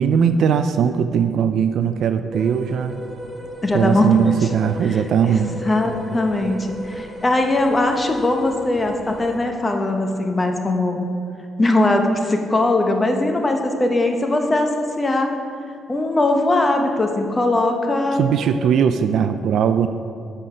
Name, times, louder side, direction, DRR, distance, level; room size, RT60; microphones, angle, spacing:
voice 1, 0.0-3.0 3.7-5.6 18.2-19.9, right 7 dB, 70° right, 10 dB, 0.3 m, -19 dB
sound 1, 2.3-9.4, left 1 dB, 35° right, 1.3 m, -35 dB
voice 2, 3.6-4.5 4.9-11.0 11.6-15.3 15.9-18.2, left 2 dB, 25° left, 4 dB, 0.9 m, -20 dB
7.6 x 5.4 x 4.9 m, 2.3 s
cardioid pair, 90°, 0 cm